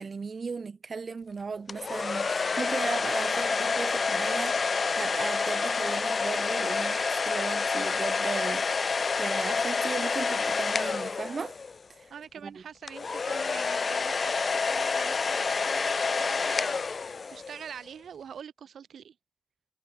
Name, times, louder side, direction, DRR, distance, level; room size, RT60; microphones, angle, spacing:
voice 1, 0.0-11.6 11.9-12.1 12.4-12.6, right 5 dB, 45° right, 4.2 m, -37 dB
sound 1, 1.7-11.8 12.9-17.6, left 4 dB, 40° left, 0.7 m, -28 dB
voice 2, 12.1-16.8 17.3-19.1, right 8 dB, 75° right, 2.3 m, -45 dB
wide cardioid pair, 110°, 0 cm